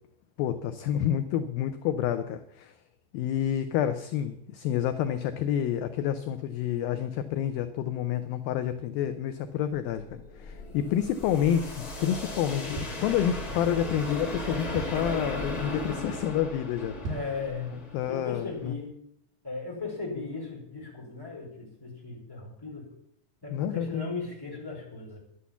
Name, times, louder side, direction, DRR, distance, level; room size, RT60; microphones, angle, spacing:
voice 1, 0.4-2.8 3.1-16.9 17.9-18.7 23.5-24.1, left 10 dB, 80° left, 9 dB, 2.2 m, -29 dB
sound 1, 9.8-18.7, left 1 dB, 50° left, 1.1 m, -37 dB
sound 2, 12.7-13.7 14.2-14.3 14.5-15.2 15.7-15.9 16.2-16.3 16.9-17.5 17.9-18.0, right 2 dB, 65° right, 4.0 m, -39 dB
voice 2, 17.1-17.7 18.1-19.0 19.4-22.9 23.4-25.2, left 4 dB, 5° left, -3 dB, 4.3 m, -37 dB
11.5 x 10.5 x 7.1 m, 0.73 s
omnidirectional pair, 4.8 m